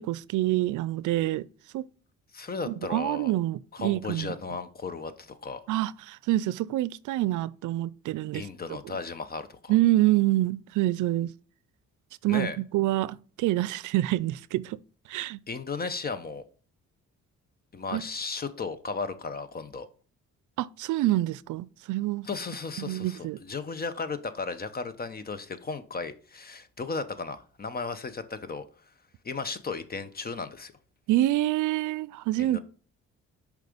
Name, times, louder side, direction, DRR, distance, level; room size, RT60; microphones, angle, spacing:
voice 1, 0.0-1.5 1.7-1.9 2.7-4.3 5.7-8.4 9.7-11.3 12.2-14.8 15.1-15.4 17.9-18.0 20.6-22.3 22.8-23.4 31.1-32.6, right 16 dB, 80° right, 0.5 m, -26 dB
voice 2, 2.3-3.3 3.7-5.6 8.3-9.7 12.3-12.6 15.5-16.5 17.7-19.9 22.2-28.7 29.2-30.7 32.4-32.6, left 4 dB, 30° left, 1.0 m, -35 dB
6.5 x 5.1 x 5.1 m
cardioid pair, 90°, 30 cm